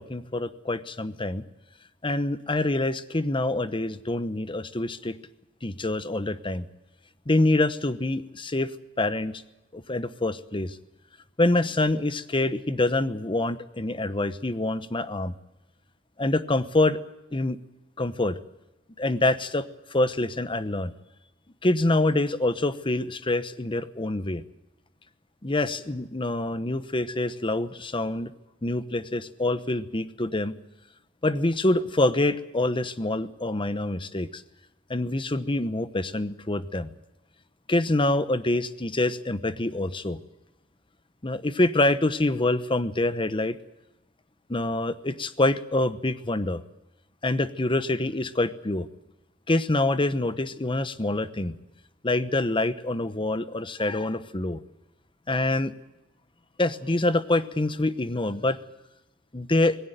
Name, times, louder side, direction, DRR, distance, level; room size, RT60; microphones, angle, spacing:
voice 1, 0.0-1.4 2.0-5.2 5.6-6.6 7.3-8.7 9.0-9.4 9.7-10.8 11.4-15.3 16.2-17.0 17.3-17.6 18.0-18.4 19.0-19.6 19.9-20.9 21.6-24.4 25.4-28.3 28.6-30.5 31.2-34.4 34.9-36.9 37.7-40.2 41.2-43.6 44.5-46.6 47.2-48.9 49.5-51.5 52.0-54.6 55.3-55.7 56.6-58.6 59.3-59.8, left 2 dB, 25° left, 13 dB, 1.0 m, -26 dB
19.5 x 16.5 x 9.2 m, 0.95 s
head